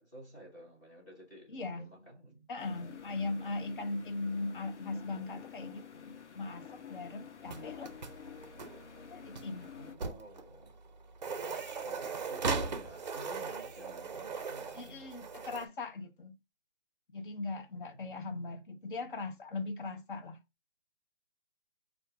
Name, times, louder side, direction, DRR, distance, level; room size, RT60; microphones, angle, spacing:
voice 1, 0.0-2.5 9.8-10.7 11.8-15.0, right 1 dB, 15° left, 1.1 m, -52 dB
voice 2, 1.5-1.9 2.5-7.9 9.1-9.7 14.8-16.4 17.1-20.4, left 3 dB, 45° left, 0.7 m, -39 dB
sound 1, 2.6-9.9, left 8 dB, 80° left, 0.8 m, -50 dB
sound 2, 7.5-15.7, right 4 dB, 40° right, 0.5 m, -39 dB
4.5 x 2.5 x 3.4 m
hypercardioid pair, 170°, 35 cm